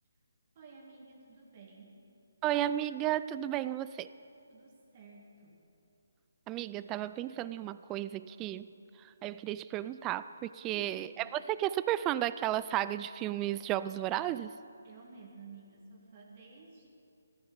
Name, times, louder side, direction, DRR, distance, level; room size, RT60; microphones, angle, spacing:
voice 1, 0.6-2.0 4.5-5.6 10.6-11.1 14.8-16.9, right 4 dB, 35° right, -1 dB, 2.2 m, -53 dB
voice 2, 2.4-4.1 6.5-8.7 9.0-14.6, right 13 dB, 15° right, 15 dB, 0.3 m, -33 dB
15.0 x 13.5 x 5.2 m, 2.7 s
figure-of-eight pair, 150°, 0 cm